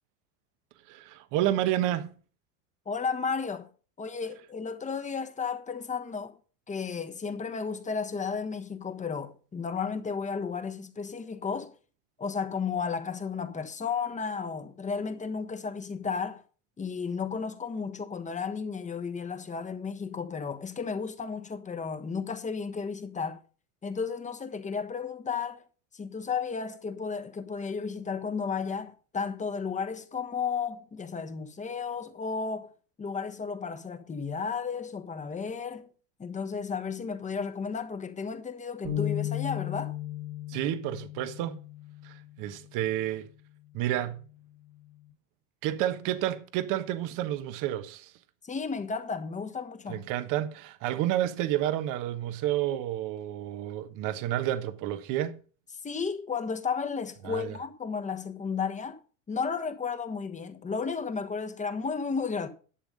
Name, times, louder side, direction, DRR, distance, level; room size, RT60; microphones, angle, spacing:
voice 1, 0.9-2.1 40.5-41.6 42.0-43.3 43.7-44.2 45.6-48.1 49.9-55.4 57.2-57.6, right 13 dB, 55° right, 1.2 m, -30 dB
voice 2, 2.9-3.7 4.0-6.4 6.7-11.7 12.2-16.4 16.8-23.4 23.8-25.6 25.9-32.7 33.0-35.9 36.2-39.9 48.4-50.0 55.8-59.0 59.3-62.5, left 5 dB, 20° left, 1.3 m, -33 dB
sound 1, 38.8-42.4, left 12 dB, 85° right, 3.3 m, -35 dB
11.5 x 7.0 x 5.3 m
supercardioid pair, 100°, 37 cm